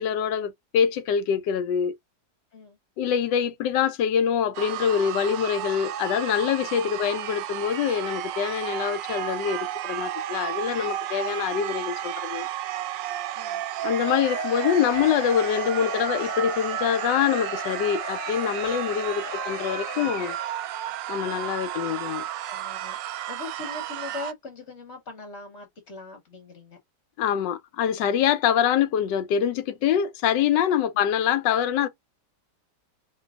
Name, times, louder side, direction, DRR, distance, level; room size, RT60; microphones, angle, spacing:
voice 1, 0.0-2.0 3.0-12.5 13.8-20.4 21.1-22.2 27.2-31.9, left 8 dB, 85° left, 1.3 m, -25 dB
sound 1, 4.5-24.3, right 12 dB, 90° right, 1.3 m, -32 dB
Cheering / Crowd, 13.9-20.6, left 11 dB, 70° left, 1.0 m, -39 dB
voice 2, 22.4-26.8 30.7-30.8, left 3 dB, 45° left, 1.3 m, -41 dB
4.5 x 2.9 x 2.4 m
omnidirectional pair, 1.9 m